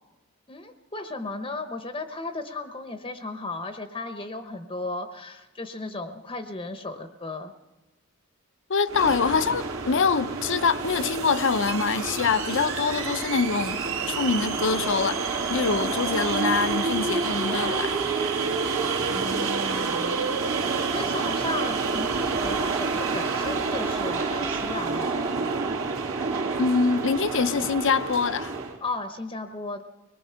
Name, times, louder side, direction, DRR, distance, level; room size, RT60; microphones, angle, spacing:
voice 1, 0.5-7.5 19.1-20.3 20.7-25.5 28.8-29.8, left 2 dB, 25° left, 0.9 m, -35 dB
voice 2, 8.7-15.2 15.5-18.0 26.6-28.5, left 5 dB, 60° left, 0.7 m, -25 dB
sound 1, 8.9-28.8, right 4 dB, 70° right, 2.8 m, -28 dB
24.0 x 20.5 x 5.7 m
head